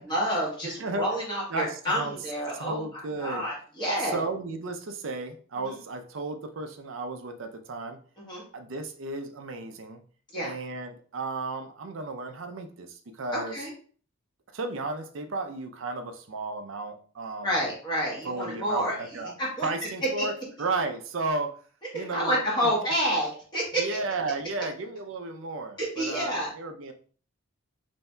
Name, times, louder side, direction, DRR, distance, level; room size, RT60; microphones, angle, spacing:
voice 1, 0.0-4.2 5.6-5.8 8.2-8.4 10.3-10.5 13.3-13.7 17.4-18.9 19.4-19.7 20.2-20.3 21.9-23.8 25.8-26.5, equal, 20° left, -5 dB, 1.3 m, -29 dB
voice 2, 1.5-2.2 2.6-3.4 4.1-8.0 8.5-10.0 10.4-13.6 14.5-17.6 18.2-19.3 19.6-20.3 20.6-21.5 21.9-22.7 23.8-26.9, right 3 dB, 70° right, 7 dB, 0.5 m, -33 dB
5.4 x 2.7 x 2.2 m, 0.43 s
head